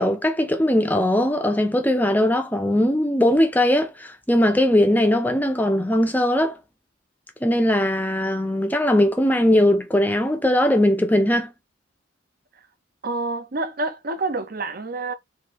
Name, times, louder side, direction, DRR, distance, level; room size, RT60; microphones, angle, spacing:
voice 1, 0.0-6.6 7.4-11.5, left 1 dB, 10° left, 0.5 m, -20 dB
voice 2, 13.0-15.1, right 3 dB, 45° right, 0.6 m, -28 dB
3.9 x 2.6 x 3.0 m
head